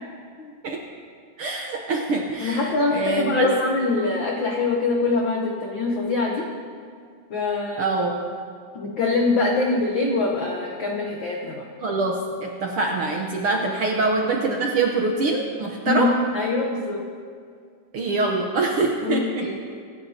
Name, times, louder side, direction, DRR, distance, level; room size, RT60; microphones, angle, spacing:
voice 1, 1.4-3.5 7.8-8.2 11.8-16.1 17.9-19.5, right 3 dB, 65° right, 0 dB, 1.4 m, -24 dB
voice 2, 2.4-6.5 7.3-7.8 8.7-11.6 15.9-16.1 16.3-17.0 19.0-19.7, left 3 dB, 80° left, 0 dB, 1.0 m, -24 dB
24.5 x 11.5 x 2.8 m, 2.2 s
omnidirectional pair, 3.6 m